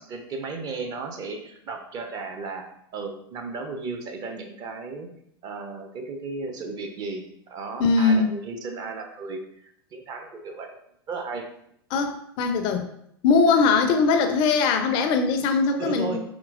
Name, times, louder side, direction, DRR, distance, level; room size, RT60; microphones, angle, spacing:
voice 1, 0.0-2.6 2.9-5.1 5.4-7.2 7.5-9.7 9.9-10.7 11.1-11.5 15.8-16.2, right 3 dB, 30° right, 4 dB, 0.5 m, -34 dB
voice 2, 7.8-8.3 11.9-12.9 13.2-16.2, left 4 dB, 40° left, 6 dB, 0.4 m, -21 dB
3.6 x 2.8 x 2.4 m, 0.72 s
figure-of-eight pair, 85°, 13 cm